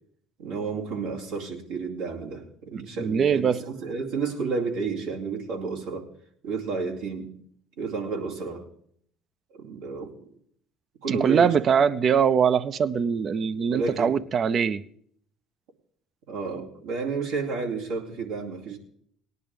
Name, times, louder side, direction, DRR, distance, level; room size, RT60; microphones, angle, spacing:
voice 1, 0.4-6.1 6.4-7.3 7.8-8.7 9.5-10.3 11.0-11.6 13.7-14.2 16.3-18.8, right 4 dB, 80° right, 2.5 m, -31 dB
voice 2, 2.7-3.6 11.1-14.8, right 7 dB, 45° right, 0.6 m, -22 dB
18.5 x 10.5 x 3.5 m
hypercardioid pair, 70°, 0 cm